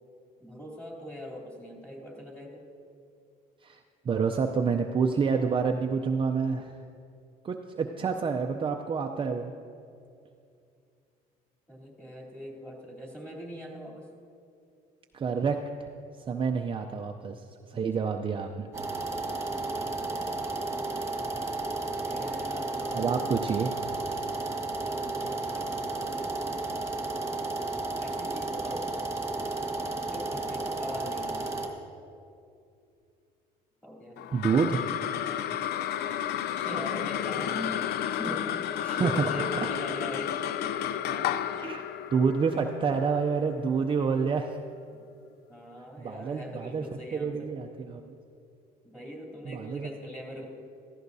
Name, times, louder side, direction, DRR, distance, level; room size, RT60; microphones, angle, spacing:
voice 1, 0.4-2.6 11.7-14.1 17.7-18.0 20.0-20.3 21.8-23.5 24.9-26.4 28.0-28.9 29.9-31.5 33.8-34.2 36.5-41.3 45.5-47.5 48.8-50.4, equal, 5° left, -2 dB, 3.1 m, -41 dB
voice 2, 4.0-6.8 7.4-9.5 15.1-15.9 16.2-18.7 19.8-19.9 22.9-23.7 34.3-34.9 38.8-39.1 41.6-41.8 42.1-44.6 46.0-46.8 47.1-48.2 49.4-49.9, right 5 dB, 30° right, 3 dB, 0.5 m, -28 dB
sound 1, 18.7-31.7, right 3 dB, 15° right, 1.7 m, -33 dB
sound 2, 34.2-44.8, left 10 dB, 75° left, 0.4 m, -32 dB
16.0 x 14.5 x 2.7 m, 2.4 s
cardioid pair, 110°, 17 cm